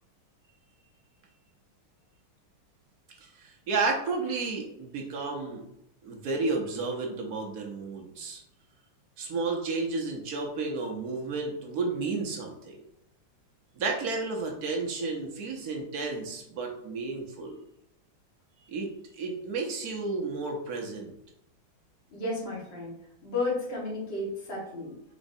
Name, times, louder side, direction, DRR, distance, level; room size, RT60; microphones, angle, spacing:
voice 1, 3.4-5.6 6.0-8.4 9.2-12.8 13.8-17.6 18.6-21.1, right 3 dB, 60° right, 0 dB, 1.1 m, -32 dB
voice 2, 22.1-23.0 23.2-24.9, left 2 dB, 30° left, -5 dB, 1.5 m, -32 dB
4.2 x 4.0 x 2.7 m, 0.76 s
omnidirectional pair, 2.2 m